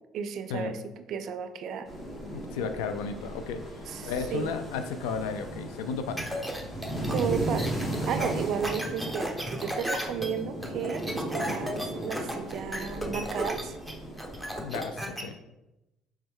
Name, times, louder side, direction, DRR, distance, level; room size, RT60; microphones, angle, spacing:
voice 1, 0.1-0.8 1.1-1.9 3.9-4.6 7.1-7.7 8.1-13.8, right 7 dB, 60° right, 9 dB, 0.4 m, -33 dB
sound 1, 1.9-14.7, right 1 dB, 30° left, 1.3 m, -36 dB
voice 2, 2.2-3.6 4.0-6.3 14.6-15.4, left 5 dB, 80° left, 9 dB, 0.3 m, -34 dB
sound 2, 6.2-15.2, equal, 5° left, 0.8 m, -35 dB
3.5 x 3.0 x 3.6 m, 0.96 s
hypercardioid pair, 65°, 0 cm